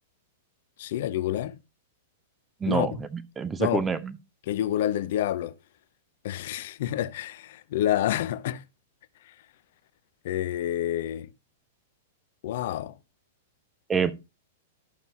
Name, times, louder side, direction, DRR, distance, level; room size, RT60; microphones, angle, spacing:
voice 1, 0.8-1.6 2.7-2.9 3.6-3.8 4.5-5.5 6.2-8.6 10.2-11.3 12.4-12.9, left 12 dB, 55° left, 0.5 m, -28 dB
voice 2, 2.6-4.2 13.9-14.1, right 6 dB, 15° right, 0.7 m, -27 dB
11.5 x 6.7 x 3.0 m
figure-of-eight pair, 100°, 0 cm